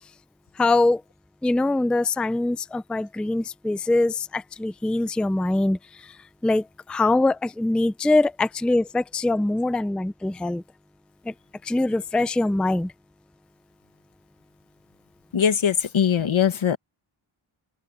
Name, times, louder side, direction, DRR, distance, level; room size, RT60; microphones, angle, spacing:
voice 1, 0.6-1.0 1.4-5.8 6.4-6.6 6.9-10.6 11.3-11.4 11.7-12.9, left 2 dB, ahead, 0.4 m, -23 dB
voice 2, 15.3-16.8, left 8 dB, 75° left, 1.6 m, -21 dB
wide cardioid pair, 130°, 48 cm